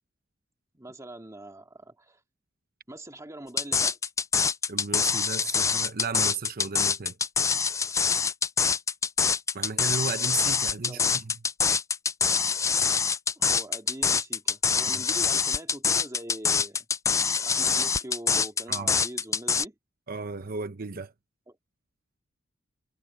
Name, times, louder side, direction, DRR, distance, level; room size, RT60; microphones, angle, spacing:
voice 1, 0.7-2.2 2.9-4.0 10.9-11.2 13.4-16.9 17.4-19.8 21.5-21.6, right 1 dB, 15° right, 2.3 m, -43 dB
sound 1, 3.6-19.6, left 6 dB, 15° left, 0.3 m, -25 dB
voice 2, 4.7-7.2 9.5-11.3 18.7-19.0 20.1-21.1, right 4 dB, 50° right, 0.9 m, -34 dB
head